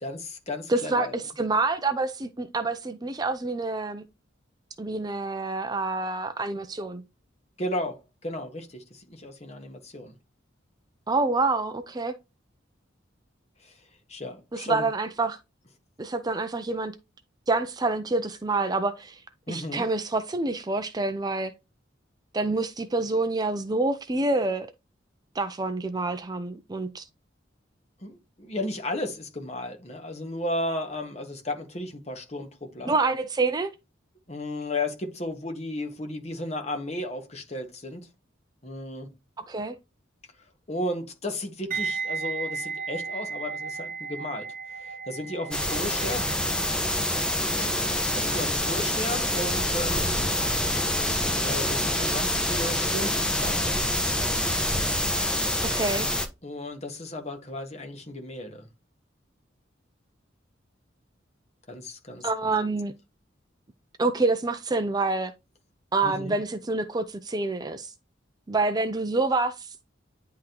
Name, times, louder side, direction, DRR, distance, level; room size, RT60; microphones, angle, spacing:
voice 1, 0.0-1.2 7.6-10.2 13.6-13.7 14.1-14.8 19.5-19.8 28.0-32.9 34.3-38.1 38.6-39.1 40.7-44.5 44.8-46.3 47.5-50.1 51.4-53.6 56.4-58.7 61.7-62.3 66.0-66.4, left 1 dB, 35° left, 1.7 m, -34 dB
voice 2, 0.7-4.0 4.8-7.0 11.1-12.2 14.5-15.4 16.0-16.9 17.5-19.2 19.5-21.5 22.3-24.7 25.3-27.1 32.9-33.7 39.4-39.8 55.6-56.1 62.2-62.9 64.0-65.3 65.9-67.9 68.5-69.7, right 3 dB, 20° right, 0.5 m, -27 dB
sound 1, 41.7-50.7 50.9-51.2, right 5 dB, 45° right, 1.1 m, -36 dB
sound 2, 45.5-56.3, left 1 dB, 5° left, 1.0 m, -26 dB
10.0 x 3.7 x 2.9 m
head